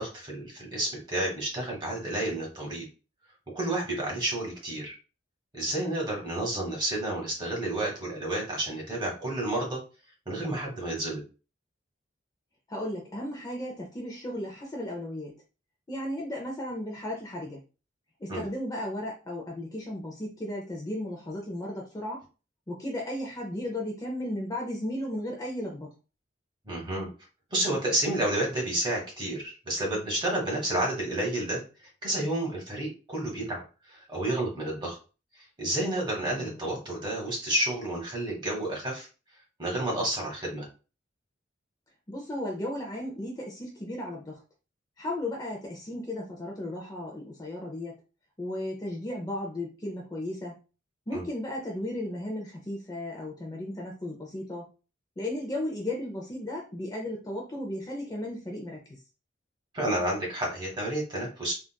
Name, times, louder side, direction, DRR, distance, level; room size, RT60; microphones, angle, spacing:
voice 1, 0.0-2.9 3.5-4.9 5.5-9.8 10.3-11.2 18.3-18.4 26.6-27.1 27.5-31.6 32.0-33.6 33.9-35.0 35.6-39.1 39.6-40.7 51.1-51.2 59.7-61.5, right 1 dB, 25° right, -1 dB, 1.2 m, -30 dB
voice 2, 12.7-15.3 15.9-17.6 18.2-22.2 22.7-25.9 36.4-36.6 42.1-44.4 45.0-48.0 48.4-50.6 51.1-54.7 55.2-59.0, left 1 dB, 20° left, -1 dB, 0.5 m, -35 dB
3.7 x 2.4 x 2.2 m, 0.33 s
head